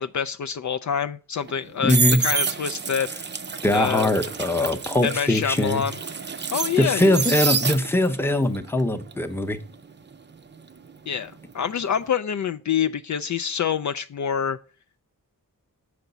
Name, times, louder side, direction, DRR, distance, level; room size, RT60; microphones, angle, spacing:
voice 1, 0.0-3.1 3.7-4.1 5.0-6.0 6.5-7.3 11.1-14.6, left 7 dB, 55° left, 0.4 m, -26 dB
sound 1, 1.5-8.2 8.5-11.4 11.7-12.0, right 6 dB, 30° right, 0.5 m, -28 dB
voice 2, 1.8-2.2 3.6-5.8 6.8-9.6, left 1 dB, 5° left, 0.8 m, -21 dB
7.1 x 5.1 x 6.7 m
wide cardioid pair, 115°, 35 cm